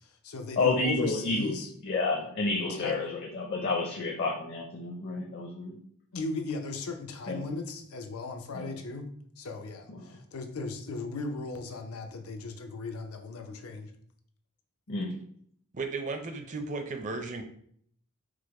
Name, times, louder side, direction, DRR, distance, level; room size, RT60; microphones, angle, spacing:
voice 1, 0.0-1.7 2.7-2.9 6.1-9.1 9.4-13.9, left 3 dB, 90° left, 4 dB, 0.7 m, -37 dB
voice 2, 0.6-1.5 1.8-5.8 7.3-7.4 8.5-8.7 9.9-10.2 14.9-15.1, left 3 dB, 50° left, -1 dB, 0.6 m, -30 dB
voice 3, 15.7-17.4, right 3 dB, 35° right, 6 dB, 0.5 m, -35 dB
4.8 x 2.1 x 4.7 m, 0.63 s
head